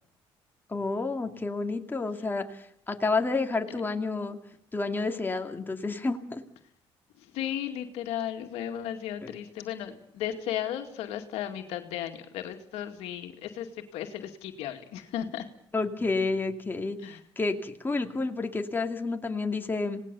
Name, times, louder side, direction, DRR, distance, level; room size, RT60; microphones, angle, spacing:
voice 1, 0.7-4.4 4.7-6.4 9.2-9.3 15.7-17.0 17.4-20.0, left 3 dB, 20° left, 4 dB, 2.5 m, -30 dB
voice 2, 7.2-15.5 17.0-17.2, left 10 dB, 85° left, 5 dB, 2.2 m, -35 dB
27.0 x 18.5 x 7.0 m, 0.68 s
cardioid pair, 90°, 10 cm